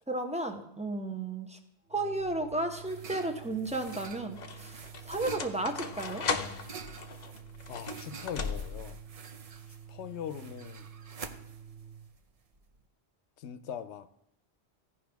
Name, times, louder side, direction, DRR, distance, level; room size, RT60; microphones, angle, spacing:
voice 1, 0.1-1.6 1.9-6.2, right 2 dB, 5° right, 0.7 m, -33 dB
Organ, 1.9-12.2, right 8 dB, 70° right, 1.1 m, -50 dB
sound 1, 2.2-2.7 3.5-9.0, left 5 dB, 45° left, 0.7 m, -38 dB
sound 2, 2.2-12.8, right 5 dB, 45° right, 0.5 m, -48 dB
voice 2, 7.7-9.0 9.9-10.9 13.4-14.1, left 8 dB, 85° left, 0.9 m, -41 dB
16.0 x 5.3 x 3.4 m
omnidirectional pair, 1.1 m